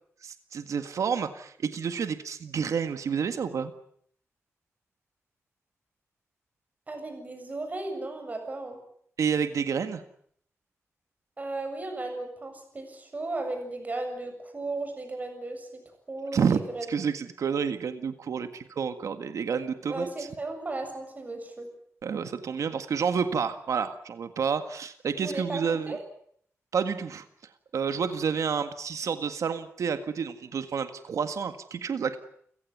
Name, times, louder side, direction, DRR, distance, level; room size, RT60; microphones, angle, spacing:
voice 1, 0.2-3.7 9.2-10.0 16.3-16.6 16.9-20.3 22.0-26.0 26.7-27.2 27.7-32.2, right 6 dB, 85° right, 10 dB, 1.8 m, -29 dB
voice 2, 6.9-8.8 11.4-15.7 16.1-16.9 19.9-21.7 25.2-26.0, right 2 dB, 30° right, 6 dB, 7.5 m, -35 dB
29.5 x 17.0 x 9.4 m, 0.66 s
wide cardioid pair, 145°, 5 cm